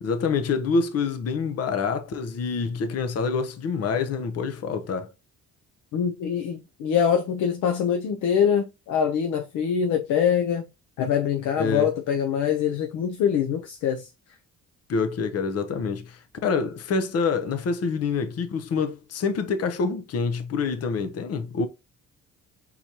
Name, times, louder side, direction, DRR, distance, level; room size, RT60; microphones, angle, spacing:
voice 1, 0.0-5.1 11.6-11.9 14.9-21.7, left 5 dB, 55° left, 0.7 m, -26 dB
voice 2, 5.9-10.6 11.0-14.1, left 8 dB, 85° left, 0.7 m, -24 dB
4.5 x 4.0 x 2.8 m
cardioid pair, 90°, 30 cm